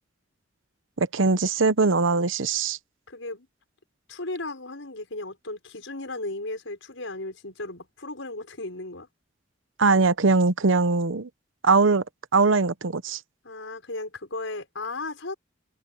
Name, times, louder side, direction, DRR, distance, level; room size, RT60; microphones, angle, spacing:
voice 1, 1.0-2.8 9.8-11.3 11.6-12.0 12.3-13.2, right 4 dB, 90° right, 0.9 m, -21 dB
voice 2, 3.1-3.5 4.1-9.1 13.4-15.4, left 2 dB, 85° left, 5.6 m, -35 dB
head